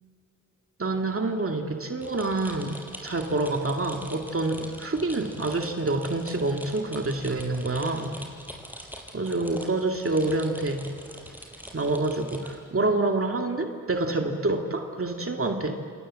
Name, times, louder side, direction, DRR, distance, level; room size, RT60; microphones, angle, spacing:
voice 1, 0.8-2.8 3.0-8.1 9.1-10.8 11.7-15.7, right 2 dB, 45° right, 3 dB, 2.3 m, -27 dB
sound 1, 2.0-12.6, equal, 5° right, 5.5 m, -43 dB
28.5 x 27.5 x 7.6 m, 2.3 s
cardioid pair, 65°, 32 cm